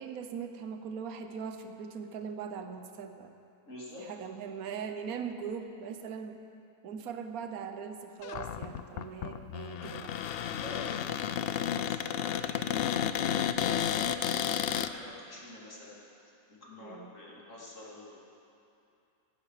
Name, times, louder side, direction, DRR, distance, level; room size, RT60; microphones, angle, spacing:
voice 1, 0.0-3.3 4.0-6.4 6.8-10.1 16.8-17.1, right 6 dB, 70° right, 7 dB, 1.3 m, -40 dB
voice 2, 3.7-4.1 10.6-18.2, left 2 dB, 55° left, -5 dB, 3.3 m, -48 dB
Cupboard open or close, 8.2-14.9, left 9 dB, 85° left, 0.5 m, -32 dB
17.5 x 16.0 x 4.9 m, 2.7 s
omnidirectional pair, 1.6 m